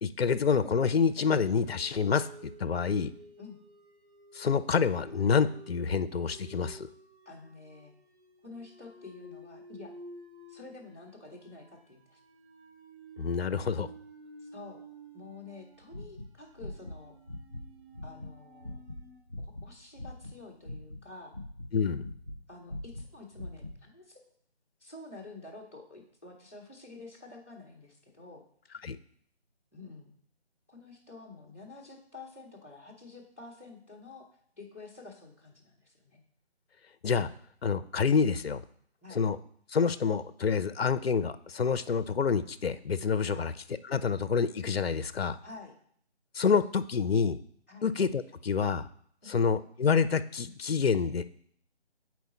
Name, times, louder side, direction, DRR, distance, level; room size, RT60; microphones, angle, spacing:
voice 1, 0.0-2.3 2.6-3.1 4.3-6.9 13.2-13.9 21.7-22.0 28.8-29.0 37.0-37.3 37.6-38.6 39.1-39.4 39.7-43.5 43.9-45.4 46.3-47.4 47.8-48.9 49.3-51.2, left 6 dB, 60° left, 13 dB, 0.5 m, -27 dB
sound 1, 1.3-19.2, right 2 dB, 65° right, 3.4 m, -52 dB
voice 2, 7.2-7.9 8.4-10.0 10.5-12.2 14.4-14.8 15.1-17.2 18.0-18.8 19.4-21.3 22.5-24.3 24.8-28.4 29.7-30.1 30.7-34.3 34.5-36.2 39.0-39.2 43.2-43.5 45.4-45.7 47.7-47.9 49.2-49.4, left 3 dB, 10° left, -5 dB, 0.7 m, -49 dB
sound 2, 15.8-17.0 17.3-17.7 17.9-20.4 20.6-22.4 22.7-23.8, left 1 dB, 25° right, 0.6 m, -42 dB
8.3 x 4.5 x 4.1 m, 0.64 s
figure-of-eight pair, 160°, 34 cm